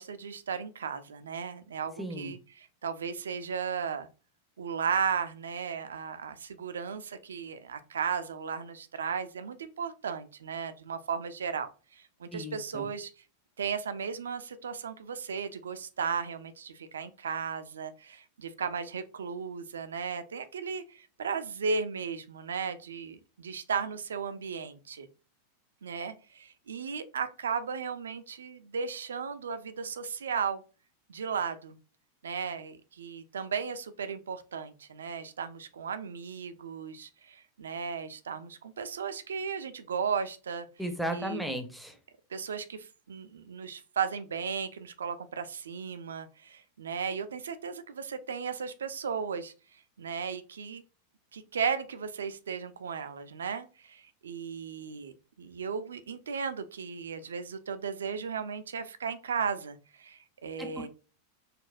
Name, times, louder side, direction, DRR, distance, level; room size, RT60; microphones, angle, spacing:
voice 1, 0.0-4.1 4.6-13.1 13.6-25.1 25.8-30.6 31.1-31.8 32.2-40.7 41.1-41.4 42.3-49.5 50.0-50.8 51.3-55.1 55.4-60.9, right 6 dB, 65° right, 11 dB, 0.3 m, -35 dB
voice 2, 2.0-2.3 12.3-12.9 40.8-42.0 60.6-60.9, equal, ahead, 5 dB, 0.5 m, -35 dB
4.0 x 2.1 x 2.5 m, 0.34 s
figure-of-eight pair, 90°, 0 cm